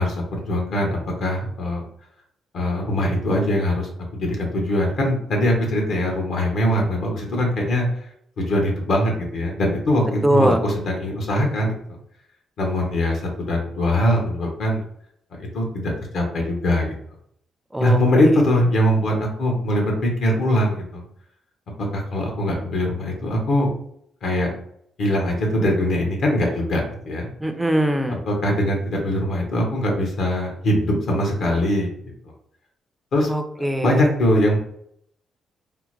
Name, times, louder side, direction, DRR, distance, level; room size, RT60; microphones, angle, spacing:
voice 1, 0.0-1.8 2.5-7.9 8.4-11.8 12.6-14.8 15.3-16.9 17.8-21.0 21.9-23.7 24.2-24.5 25.0-27.3 28.1-31.9 33.1-33.3 33.8-34.6, left 1 dB, 65° left, 1 dB, 0.9 m, -22 dB
voice 2, 10.2-10.6 17.7-18.0 27.4-28.2 33.3-34.0, right 1 dB, 10° right, 6 dB, 0.4 m, -21 dB
3.5 x 2.1 x 3.0 m, 0.69 s
cardioid pair, 90°, 0 cm